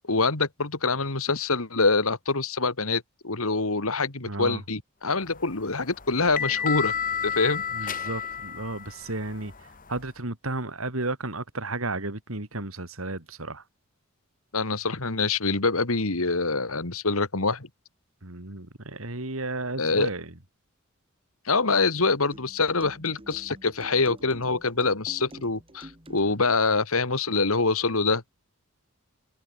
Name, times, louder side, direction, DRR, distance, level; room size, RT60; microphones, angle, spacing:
voice 1, 0.1-6.9 7.2-7.9 14.5-17.7 19.8-20.1 21.5-28.2, left 3 dB, 75° left, 2.3 m, -25 dB
voice 2, 4.2-4.6 7.7-13.6 18.2-20.3, right 2 dB, 70° right, 3.1 m, -33 dB
sound 1, 5.3-10.1, left 7 dB, 40° left, 2.6 m, -32 dB
sound 2, 22.3-26.6, right 1 dB, 25° right, 6.9 m, -47 dB
head